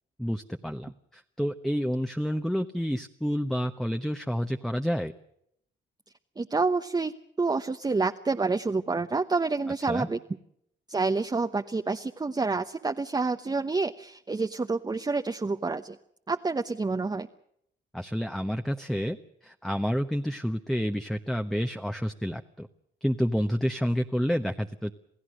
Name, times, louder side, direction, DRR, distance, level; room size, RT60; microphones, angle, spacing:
voice 1, 0.2-5.1 9.9-10.1 17.9-19.2 19.4-22.7 23.0-24.9, equal, ahead, 6 dB, 1.1 m, -29 dB
voice 2, 6.4-10.2 10.9-16.0 16.3-17.3, right 3 dB, 20° right, 7 dB, 0.9 m, -28 dB
28.0 x 16.5 x 6.5 m, 0.73 s
cardioid pair, 75°, 19 cm